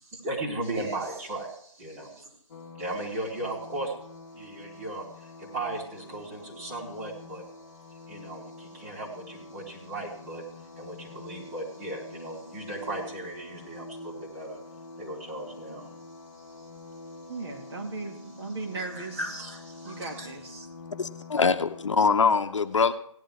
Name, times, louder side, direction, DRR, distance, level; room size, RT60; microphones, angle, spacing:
voice 1, 0.0-2.3 2.8-3.9 4.3-7.4 8.1-10.4 10.8-14.6 15.0-15.9 16.3-16.7 18.9-20.3, right 2 dB, 25° right, 4.1 m, -36 dB
sound 1, 2.5-22.0, left 3 dB, 35° left, 1.7 m, -46 dB
voice 2, 17.3-19.4 19.8-20.7, right 3 dB, 50° right, 2.7 m, -37 dB
voice 3, 21.0-22.9, left 5 dB, 65° left, 0.9 m, -23 dB
17.5 x 11.0 x 3.7 m
figure-of-eight pair, 160°, 17 cm